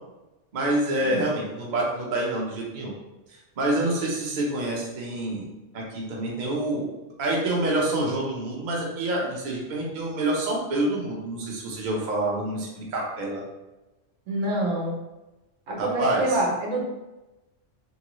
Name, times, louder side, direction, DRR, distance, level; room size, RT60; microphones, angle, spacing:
voice 1, 0.5-2.9 3.6-5.4 5.7-6.8 7.2-13.4 15.8-16.2, right 1 dB, 45° right, -3 dB, 0.7 m, -27 dB
voice 2, 14.3-15.0 15.7-16.8, right 1 dB, 80° right, -1 dB, 1.1 m, -26 dB
3.0 x 2.6 x 3.0 m, 1.0 s
omnidirectional pair, 1.3 m